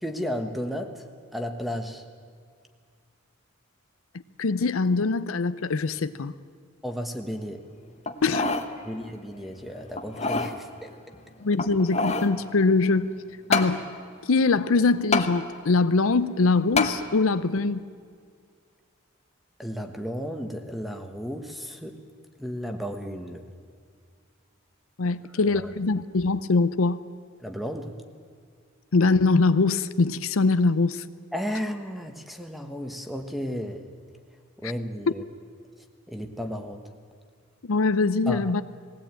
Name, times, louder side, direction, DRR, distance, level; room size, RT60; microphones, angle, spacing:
voice 1, 0.0-2.0 6.8-7.7 8.8-10.9 19.6-22.0 22.4-23.4 25.0-25.1 25.4-25.7 27.4-28.0 31.3-33.8 34.6-35.2 36.1-36.9 38.3-38.5, equal, ahead, 1.3 m, -33 dB
voice 2, 4.4-6.3 8.2-8.5 11.4-13.1 13.5-13.9 14.3-17.8 25.0-27.0 28.9-31.0 37.7-38.6, left 3 dB, 75° left, 0.6 m, -23 dB
sound 1, 8.1-8.7 9.1-9.2 10.0-10.5 11.5-12.3 13.5-13.7 15.1-15.3 16.8-17.0 17.6-17.7, left 3 dB, 30° left, 1.1 m, -25 dB
20.5 x 16.5 x 9.0 m
head